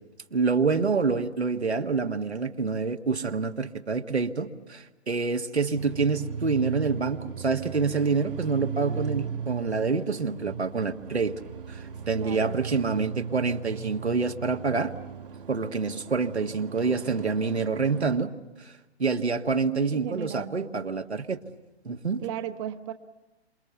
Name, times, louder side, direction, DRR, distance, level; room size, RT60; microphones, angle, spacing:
voice 1, 0.3-11.3 11.7-14.9 15.5-18.3 18.6-18.7 19.0-21.4 21.8-22.2, right 4 dB, 80° right, 5 dB, 1.7 m, -27 dB
sound 1, 5.7-18.2, right 6 dB, 55° right, 2.0 m, -37 dB
voice 2, 12.1-12.6 19.8-20.7 22.2-22.9, right 11 dB, 30° right, 8 dB, 1.0 m, -36 dB
28.5 x 28.0 x 7.0 m, 1.0 s
figure-of-eight pair, 120°, 33 cm